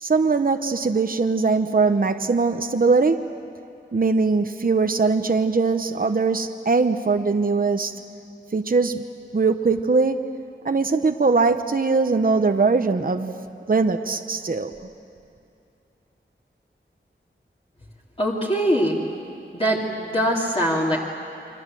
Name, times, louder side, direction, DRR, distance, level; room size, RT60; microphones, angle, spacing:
voice 1, 0.0-3.2 3.9-7.9 8.5-9.1 9.3-10.2 10.6-13.3 13.7-14.7, right 4 dB, 45° right, 7 dB, 0.9 m, -21 dB
voice 2, 18.2-18.9 19.5-21.0, equal, 30° left, -5 dB, 2.9 m, -22 dB
29.5 x 24.0 x 7.7 m, 2.7 s
wide cardioid pair, 80°, 20 cm